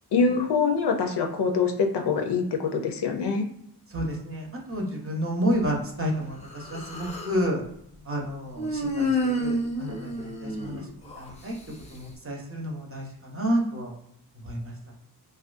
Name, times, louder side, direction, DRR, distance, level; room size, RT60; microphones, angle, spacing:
voice 1, 0.1-3.5, left 5 dB, 85° left, 3 dB, 0.5 m, -24 dB
voice 2, 3.9-7.6 8.1-10.8 11.2-11.5 11.9-13.9 14.4-14.9, equal, 35° right, -1 dB, 0.7 m, -30 dB
Human voice, 6.4-7.4 8.6-11.3, left 1 dB, 20° left, 0.4 m, -29 dB
2.4 x 2.2 x 2.5 m, 0.74 s
wide cardioid pair, 85°, 40 cm